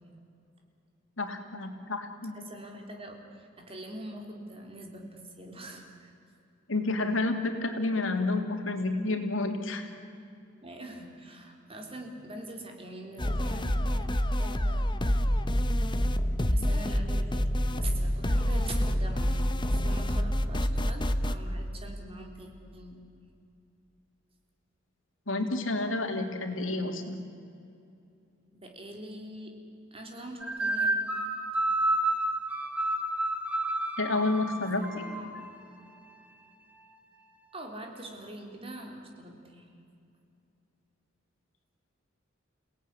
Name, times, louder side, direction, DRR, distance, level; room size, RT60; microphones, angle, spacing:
voice 1, 1.2-2.3 6.7-9.9 25.3-27.2 34.0-35.0, left 2 dB, 85° left, 5 dB, 3.0 m, -30 dB
voice 2, 2.3-6.1 10.6-15.1 16.5-23.1 28.5-29.6 29.9-31.0 34.8-35.5 37.5-39.7, right 1 dB, 30° right, 2 dB, 3.8 m, -44 dB
sound 1, 13.2-21.3, equal, 25° left, 1.0 m, -27 dB
sound 2, 30.4-35.5, right 1 dB, 5° right, 2.1 m, -30 dB
29.0 x 18.0 x 9.9 m, 2.6 s
head